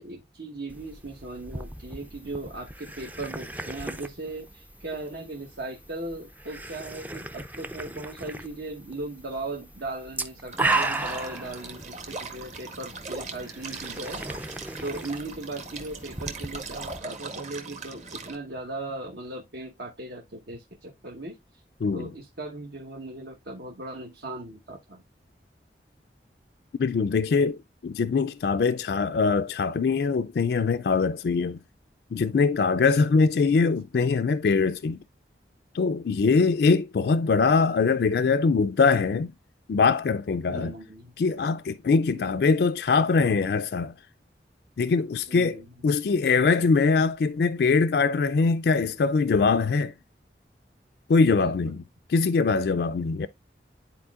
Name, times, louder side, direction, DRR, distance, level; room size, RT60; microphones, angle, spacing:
voice 1, 0.0-14.2 14.8-21.4 21.9-25.0 32.8-33.3 36.2-36.8 40.4-41.1 42.2-42.5 45.3-45.7 51.4-51.6, right 2 dB, 70° right, 1.1 m, -38 dB
sound 1, 0.7-17.0, right 3 dB, 10° right, 0.4 m, -36 dB
sound 2, 10.5-18.3, right 3 dB, 40° right, 1.1 m, -40 dB
voice 2, 26.8-31.6 32.1-35.0 35.7-39.3 39.7-40.7 41.2-43.9 44.8-45.6 45.8-49.9 51.1-51.8 52.1-53.3, left 4 dB, 65° left, 0.3 m, -22 dB
11.5 x 4.2 x 2.4 m
head